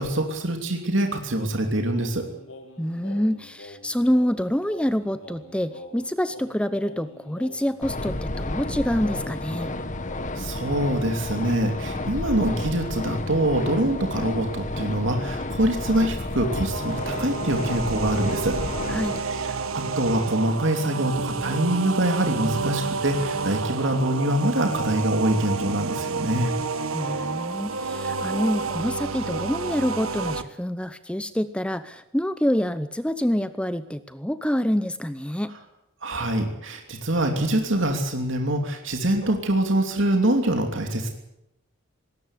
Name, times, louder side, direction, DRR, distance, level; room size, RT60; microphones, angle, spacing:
voice 1, 0.0-2.3 9.6-9.7 10.3-18.6 19.3-26.5 36.0-41.1, right 1 dB, 60° right, 4 dB, 3.0 m, -24 dB
Singing, 1.9-10.5, left 1 dB, 65° left, 5.2 m, -45 dB
voice 2, 2.8-9.7 18.9-19.2 26.9-35.5, equal, 5° left, 12 dB, 0.8 m, -26 dB
sound 1, 7.8-19.2, left 2 dB, 35° left, 1.5 m, -31 dB
sound 2, 16.7-30.4, right 4 dB, 85° right, 1.5 m, -30 dB
20.0 x 18.0 x 9.8 m, 0.83 s
head